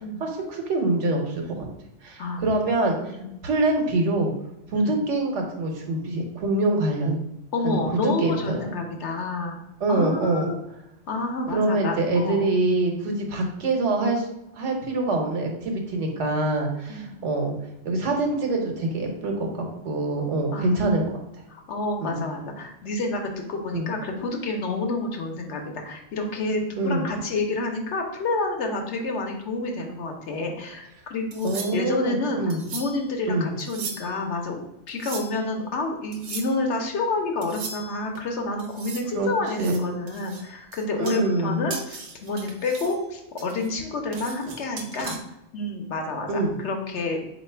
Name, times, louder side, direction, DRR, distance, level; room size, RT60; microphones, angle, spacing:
voice 1, 0.2-1.7 2.0-3.1 3.4-4.3 4.7-7.2 7.6-7.8 8.2-8.7 9.8-10.5 11.5-14.2 14.5-17.5 17.8-21.0 22.0-22.2 23.7-23.9 26.8-27.1 31.4-32.6 33.3-33.5 39.1-39.3 39.6-39.9 41.0-41.6 46.3-46.6, right 2 dB, 80° right, 2 dB, 1.2 m, -25 dB
voice 2, 7.5-9.6 9.9-10.6 11.1-12.5 16.9-17.1 20.5-21.0 21.5-34.6 34.9-45.2 45.5-47.2, left 2 dB, 70° left, 2 dB, 1.0 m, -29 dB
sound 1, 31.3-32.0 32.5-33.1 33.6-34.2 34.9-35.5 36.1-36.6 37.4-38.2 38.6-39.1 39.5-41.4 41.7-43.0 43.4-45.2, right 4 dB, 60° right, 0.8 m, -38 dB
4.0 x 2.9 x 4.3 m, 0.86 s
omnidirectional pair, 1.2 m